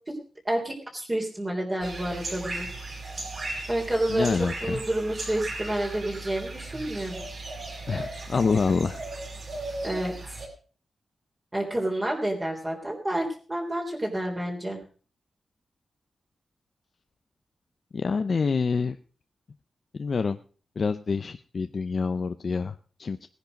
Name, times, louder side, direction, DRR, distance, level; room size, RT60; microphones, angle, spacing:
voice 1, 0.5-2.7 3.7-4.3 4.6-7.2 9.8-10.1 11.5-14.8, right 1 dB, 20° right, -1 dB, 3.5 m, -29 dB
sound 1, 1.8-10.5, right 2 dB, 50° right, 5.4 m, -37 dB
voice 2, 4.1-4.8 7.9-9.0 17.9-19.0 20.0-20.4 20.8-23.3, left 5 dB, 50° left, 9 dB, 0.6 m, -27 dB
17.5 x 10.5 x 5.2 m, 0.40 s
wide cardioid pair, 130°, 0 cm